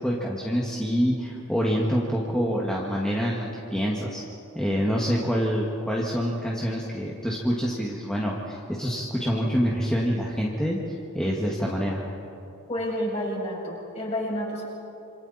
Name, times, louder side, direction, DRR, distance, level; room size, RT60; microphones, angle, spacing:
voice 1, 0.0-4.2 4.5-10.8 11.1-12.0, equal, 5° left, -4 dB, 2.1 m, -26 dB
voice 2, 12.7-14.6, equal, 30° left, -4 dB, 7.9 m, -29 dB
28.5 x 28.0 x 4.4 m, 2.7 s
head